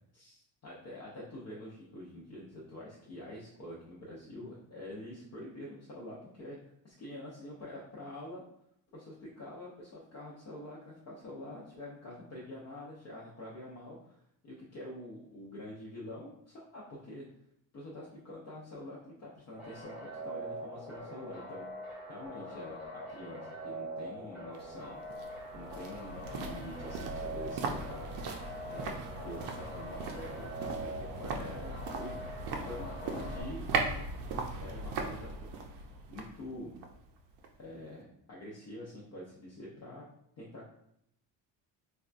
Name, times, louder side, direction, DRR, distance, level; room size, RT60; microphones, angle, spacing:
voice 1, 0.1-6.6 6.8-8.4 8.9-17.3 17.7-21.7 22.1-25.0 25.5-28.1 28.7-32.1 32.7-33.6 34.5-35.5 36.1-36.7 37.6-40.0 40.4-40.7, left 1 dB, 40° left, -5 dB, 0.5 m, -46 dB
sound 1, 19.6-33.4, right 1 dB, 5° right, 1.0 m, -43 dB
sound 2, 24.5-37.7 38.0-38.1, right 3 dB, 65° right, 0.6 m, -39 dB
4.1 x 2.2 x 2.4 m, 0.75 s
cardioid pair, 165°, 43 cm